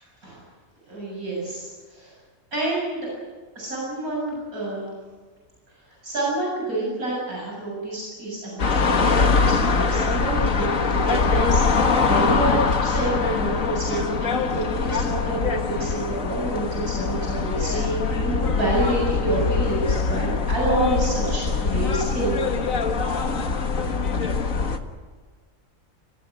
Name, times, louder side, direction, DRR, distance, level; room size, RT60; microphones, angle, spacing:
voice 1, 0.9-2.1 2.5-3.1 3.6-4.9 6.0-15.5 15.8-22.4, right 1 dB, 85° right, -4 dB, 8.2 m, -28 dB
sound 1, 8.6-24.8, left 4 dB, 65° left, 2.0 m, -23 dB
29.5 x 17.5 x 9.5 m, 1.4 s
omnidirectional pair, 1.5 m